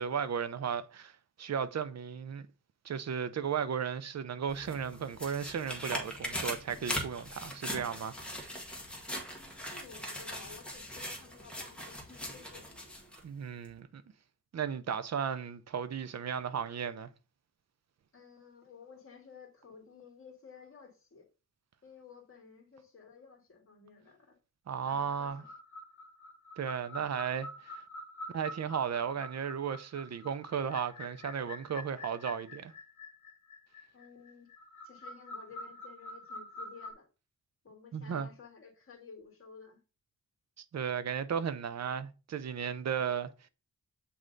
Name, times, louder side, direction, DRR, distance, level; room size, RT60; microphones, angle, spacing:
voice 1, 0.0-2.5 2.8-8.2 13.2-14.0 14.5-17.1 24.7-25.4 26.6-27.8 28.3-32.7 37.9-38.3 40.6-43.3, right 7 dB, 50° right, 0.5 m, -35 dB
sound 1, 4.5-13.2 13.6-13.7, equal, 5° left, 1.4 m, -40 dB
voice 2, 9.3-12.7 18.1-21.3 21.8-24.4 24.8-25.5 33.9-34.5 34.8-37.1 37.6-39.8, left 5 dB, 40° left, 1.8 m, -54 dB
sound 2, 25.3-36.9, left 2 dB, 60° left, 1.4 m, -46 dB
7.7 x 3.3 x 3.8 m
wide cardioid pair, 135°, 34 cm